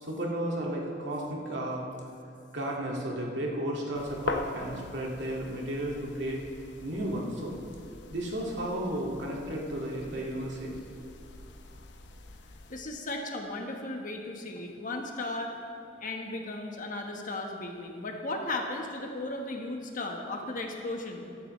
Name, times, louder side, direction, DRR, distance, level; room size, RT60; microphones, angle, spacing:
voice 1, 0.0-1.9 2.5-6.4 6.8-7.5 8.1-10.8, right 1 dB, 85° right, -2 dB, 2.2 m, -33 dB
sound 1, 3.9-12.8, left 3 dB, 75° left, 0.8 m, -42 dB
voice 2, 12.7-15.5 16.0-21.4, left 2 dB, 50° left, 2 dB, 1.3 m, -36 dB
15.0 x 12.5 x 3.2 m, 2.6 s
head